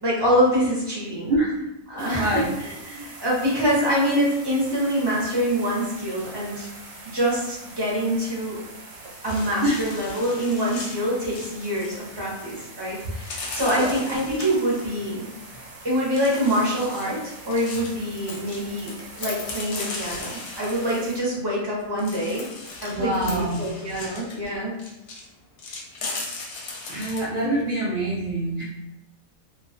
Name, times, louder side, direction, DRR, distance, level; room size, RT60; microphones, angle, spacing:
voice 1, 0.0-1.3 1.9-6.7 7.0-8.6 9.2-15.3 15.8-18.9 19.2-22.5 22.8-24.7, equal, 30° right, -6 dB, 0.5 m, -25 dB
sound 1, 2.0-21.2, right 2 dB, 60° right, 0.8 m, -43 dB
voice 2, 2.0-2.5 9.6-9.8 13.1-13.2 13.8-13.9 22.9-23.6 26.9-28.6, right 1 dB, 90° right, -6 dB, 0.4 m, -25 dB
sound 2, 9.2-12.0 13.2-15.0 16.2-18.0 18.5-21.2 21.8-25.3 25.6-27.3, left 3 dB, 65° left, 0.8 m, -38 dB
Coin (dropping), 17.6-17.9 18.2-19.7 22.3-23.4, left 4 dB, 90° left, 1.0 m, -39 dB
2.4 x 2.2 x 2.4 m, 0.90 s
omnidirectional pair, 1.4 m